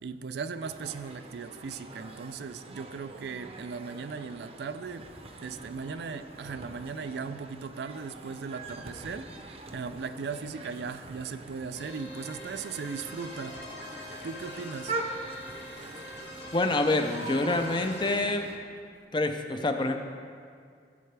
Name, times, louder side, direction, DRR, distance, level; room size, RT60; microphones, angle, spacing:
voice 1, 0.0-5.1 5.4-13.8 14.2-14.9, right 5 dB, 65° right, 11 dB, 0.4 m, -38 dB
sound 1, 0.6-18.6, right 2 dB, 35° right, 0.7 m, -43 dB
sound 2, 11.8-18.2, left 2 dB, 75° left, 2.0 m, -44 dB
voice 2, 16.5-18.5 19.1-20.0, left 2 dB, 25° left, 6 dB, 0.5 m, -27 dB
14.5 x 7.5 x 3.3 m, 2.2 s
head